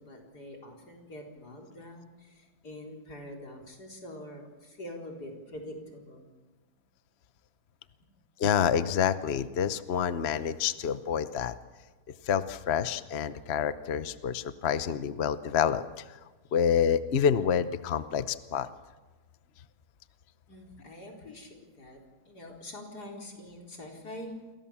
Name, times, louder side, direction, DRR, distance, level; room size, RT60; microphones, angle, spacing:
voice 1, 0.0-6.3 20.5-24.6, left 1 dB, 45° left, 1 dB, 4.6 m, -45 dB
voice 2, 8.4-11.6 12.2-16.2 16.5-18.7, left 8 dB, 65° left, 13 dB, 0.6 m, -28 dB
29.0 x 22.5 x 7.2 m, 1.3 s
omnidirectional pair, 2.4 m